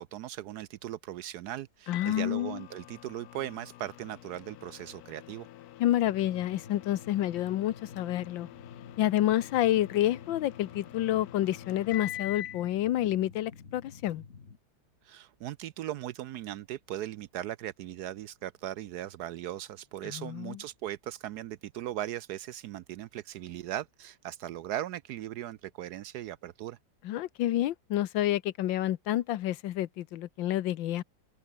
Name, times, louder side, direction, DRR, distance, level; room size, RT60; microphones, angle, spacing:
voice 1, 0.0-5.5 15.0-26.8, right 12 dB, 70° right, 1.0 m, -38 dB
voice 2, 1.9-2.6 5.8-8.5 9.0-14.2 20.0-20.6 27.0-31.0, left 13 dB, 85° left, 1.6 m, -29 dB
Microwave oven, 1.9-12.7, left 13 dB, 65° left, 1.0 m, -46 dB
sound 1, 6.0-14.6, left 5 dB, 40° left, 2.1 m, -51 dB
open air
omnidirectional pair, 2.0 m